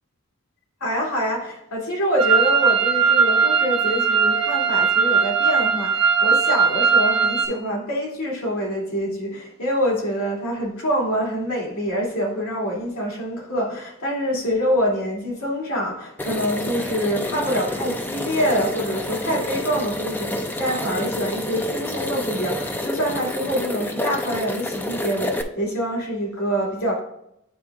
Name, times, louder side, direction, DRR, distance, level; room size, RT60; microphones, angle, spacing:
voice 1, 0.8-27.0, equal, 90° left, -4 dB, 2.5 m, -25 dB
sound 1, 2.2-7.5, right 6 dB, 80° right, 1.0 m, -19 dB
sound 2, 16.2-25.4, left 1 dB, 10° left, 0.4 m, -29 dB
9.0 x 3.5 x 3.6 m, 0.77 s
head